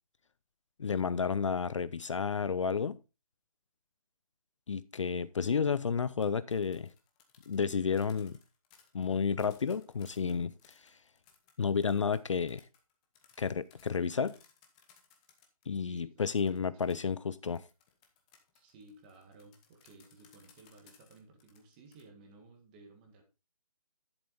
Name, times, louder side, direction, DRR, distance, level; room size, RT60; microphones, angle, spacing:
voice 1, 0.8-3.0 4.7-6.9 7.5-8.4 8.9-10.5 11.6-12.6 13.4-14.3 15.7-17.6, left 6 dB, 55° left, 0.5 m, -31 dB
sound 1, 6.2-15.7 16.3-22.0, left 7 dB, 10° left, 1.0 m, -64 dB
voice 2, 15.9-16.9 18.5-23.2, right 3 dB, 15° right, 1.7 m, -57 dB
11.0 x 7.1 x 3.9 m
hypercardioid pair, 165°, 19 cm